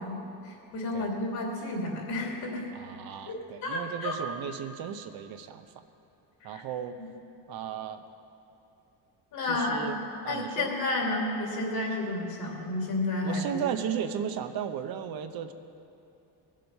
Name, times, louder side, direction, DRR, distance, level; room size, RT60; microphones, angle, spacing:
voice 1, 0.0-2.6 3.3-4.2 6.4-6.6 9.3-9.9 10.3-13.6, left 2 dB, 60° left, 0 dB, 2.8 m, -31 dB
voice 2, 2.7-5.7 6.4-7.0 7.5-8.0 9.4-10.0 10.2-10.7 13.2-15.5, right 8 dB, 60° right, 8 dB, 0.8 m, -35 dB
19.0 x 7.5 x 5.4 m, 2.8 s
cardioid pair, 125°, 41 cm